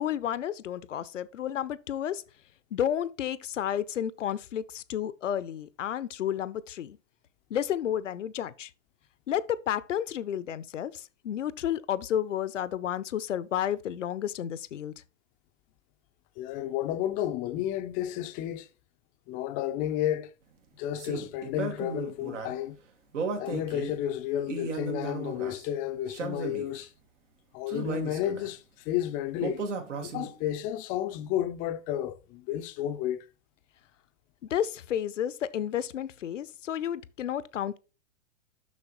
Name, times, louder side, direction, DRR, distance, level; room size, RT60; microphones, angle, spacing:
voice 1, 0.0-2.2 2.7-7.0 7.5-8.7 9.3-14.9 34.5-37.8, left 10 dB, 70° left, 0.7 m, -31 dB
voice 2, 16.4-18.7 19.3-20.3 20.8-22.8 23.4-26.9 27.5-29.6 30.0-33.3, left 11 dB, 20° left, 0.5 m, -32 dB
sound 1, 21.0-22.5 23.1-24.0 24.4-25.7 26.1-26.8 27.7-28.5 29.4-30.5, right 4 dB, 65° right, 1.8 m, -35 dB
7.2 x 6.2 x 3.0 m
hypercardioid pair, 115°, 38 cm